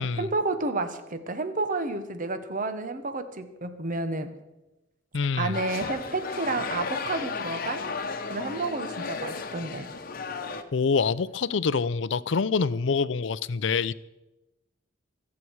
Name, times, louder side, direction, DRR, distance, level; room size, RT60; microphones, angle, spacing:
voice 1, 0.0-4.3 5.4-7.8 8.3-9.9, right 3 dB, 45° right, 1.1 m, -30 dB
voice 2, 5.1-5.6 10.7-13.9, left 5 dB, 70° left, 0.5 m, -26 dB
sound 1, 5.5-10.6, left 4 dB, 50° left, 1.0 m, -34 dB
25.5 x 8.5 x 4.7 m
head